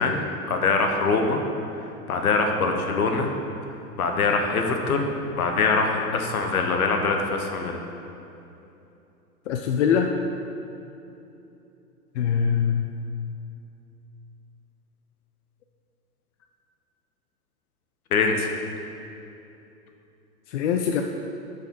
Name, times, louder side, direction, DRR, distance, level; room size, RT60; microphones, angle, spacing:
voice 1, 0.0-1.4 2.1-3.3 4.0-5.1 5.3-7.8 18.1-18.5, left 4 dB, 65° left, 3 dB, 1.2 m, -23 dB
voice 2, 9.5-10.1 12.2-12.9 20.5-21.0, left 8 dB, 50° left, 4 dB, 0.6 m, -23 dB
8.7 x 5.4 x 5.4 m, 2.8 s
figure-of-eight pair, 105°, 47 cm